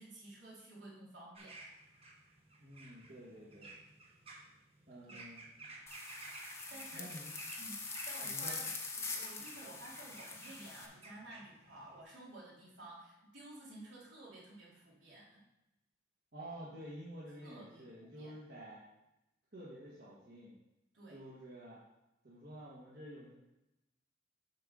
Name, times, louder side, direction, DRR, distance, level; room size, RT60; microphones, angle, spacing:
voice 1, 0.0-1.6 5.0-5.2 6.7-7.1 7.6-15.4 17.4-18.4 20.9-21.2, right 1 dB, 75° right, -6 dB, 2.8 m, -53 dB
sound 1, 1.3-12.0, right 2 dB, 30° right, 1.0 m, -54 dB
voice 2, 2.6-3.7 4.9-5.4 6.9-7.3 8.2-8.6 16.3-18.8 19.5-20.5 21.1-21.8 22.2-23.3, equal, 55° right, -7 dB, 1.4 m, -50 dB
sound 2, 5.9-10.9, left 4 dB, 15° left, 0.7 m, -43 dB
7.5 x 3.7 x 6.3 m, 0.93 s
head